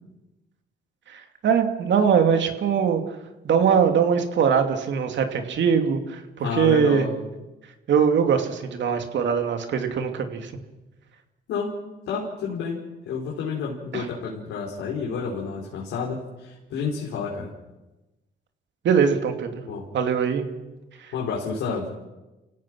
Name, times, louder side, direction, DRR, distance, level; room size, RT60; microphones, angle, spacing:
voice 1, 1.1-3.0 3.4-7.1 7.9-10.5 13.9-14.1 18.8-19.6 19.9-20.5 21.0-21.1, right 7 dB, 65° right, 6 dB, 2.6 m, -22 dB
voice 2, 6.4-7.1 11.5-11.7 12.1-17.5 19.6-19.8 21.1-21.9, left 5 dB, 85° left, -3 dB, 4.4 m, -30 dB
29.0 x 17.0 x 6.2 m, 1.1 s
cardioid pair, 90°, 20 cm